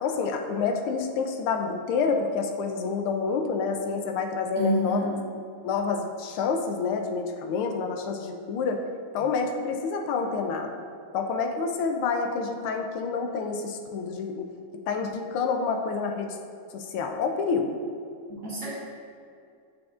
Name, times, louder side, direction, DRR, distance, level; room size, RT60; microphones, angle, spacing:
voice 1, 0.0-5.0 5.6-8.8 9.1-10.7 11.1-16.4 16.7-17.8, left 5 dB, 80° left, 4 dB, 1.4 m, -28 dB
voice 2, 4.6-5.2 18.3-18.7, equal, 50° right, -7 dB, 1.9 m, -28 dB
8.4 x 6.0 x 2.4 m, 2.4 s
omnidirectional pair, 2.4 m